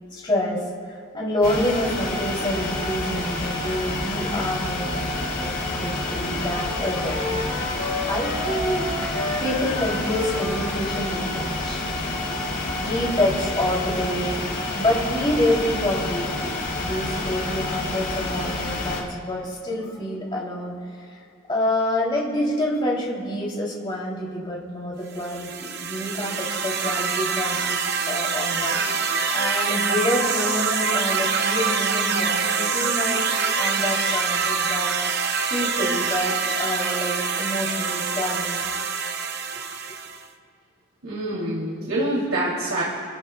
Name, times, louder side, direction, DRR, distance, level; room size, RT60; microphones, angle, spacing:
voice 1, 0.1-0.6 1.1-5.1 5.4-7.1 7.5-7.7 8.1-8.8 9.4-12.0 12.8-16.5 16.8-20.8 21.0-21.2 21.5-27.8 28.1-33.2 33.6-34.9 35.5-38.7, left 1 dB, 25° left, -4 dB, 3.2 m, -27 dB
sound 1, 1.4-19.0, left 2 dB, 45° left, 2.8 m, -28 dB
Wind instrument woodwind instrument, 6.1-11.4, left 2 dB, 80° left, 2.9 m, -32 dB
sound 2, 25.2-40.2, right 5 dB, 50° right, 0.9 m, -25 dB
voice 2, 41.0-42.8, right 1 dB, 70° right, -5 dB, 2.9 m, -26 dB
28.5 x 15.5 x 2.3 m, 2.4 s
head